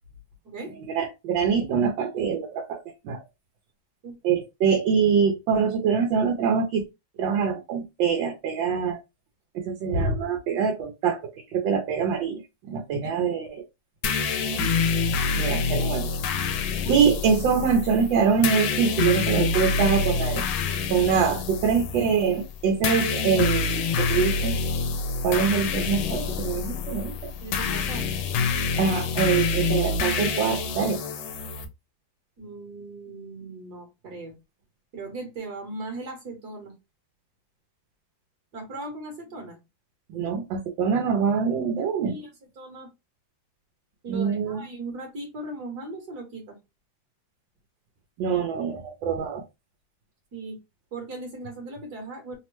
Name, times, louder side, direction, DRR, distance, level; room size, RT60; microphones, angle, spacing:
voice 1, 0.9-3.2 4.2-6.8 7.2-9.0 9.5-12.4 12.7-13.6 14.5-14.7 15.4-16.1 16.9-20.4 20.9-24.5 25.2-27.3 28.8-31.0 40.1-42.1 44.1-44.6 48.2-49.4, right 6 dB, 80° right, 3 dB, 1.4 m, -24 dB
sound 1, 14.0-31.6, left 4 dB, 80° left, 1.3 m, -27 dB
voice 2, 27.4-28.2 32.4-34.3 34.9-36.7 38.5-39.6 42.1-42.3 42.6-42.9 44.0-46.6 50.3-50.6 50.9-52.4, right 2 dB, 60° right, 3 dB, 1.4 m, -38 dB
3.4 x 2.1 x 3.0 m, 0.23 s
omnidirectional pair, 2.0 m